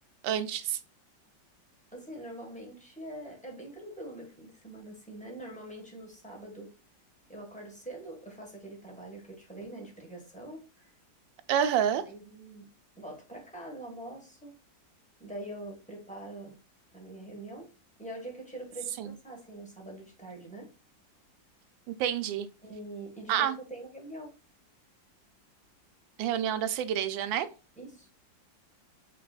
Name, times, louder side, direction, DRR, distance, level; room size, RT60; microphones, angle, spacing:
voice 1, 0.2-0.8 11.5-12.0 19.0-19.1 21.9-22.5 23.3-23.6 26.2-27.5, right 9 dB, 85° right, 1.3 m, -28 dB
voice 2, 1.9-6.7 7.3-10.9 12.1-12.7 13.0-14.5 15.2-16.5 16.9-17.7 18.0-20.7 22.6-24.3 27.8-28.1, right 1 dB, 5° left, 1.3 m, -44 dB
5.8 x 3.3 x 2.4 m
omnidirectional pair, 2.0 m